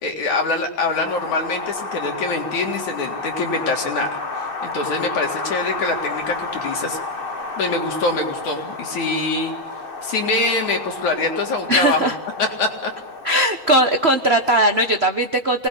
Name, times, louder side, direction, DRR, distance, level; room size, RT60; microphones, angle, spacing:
voice 1, 0.0-4.1 4.4-7.0 7.6-9.5 10.0-12.1 12.4-12.9, left 3 dB, 75° left, 2 dB, 5.1 m, -24 dB
Wind, 0.9-15.0, left 3 dB, 30° left, 0.9 m, -31 dB
voice 2, 11.7-12.2 13.2-15.7, right 1 dB, 75° right, 6 dB, 0.5 m, -18 dB
27.5 x 20.0 x 10.0 m, 0.97 s
omnidirectional pair, 3.4 m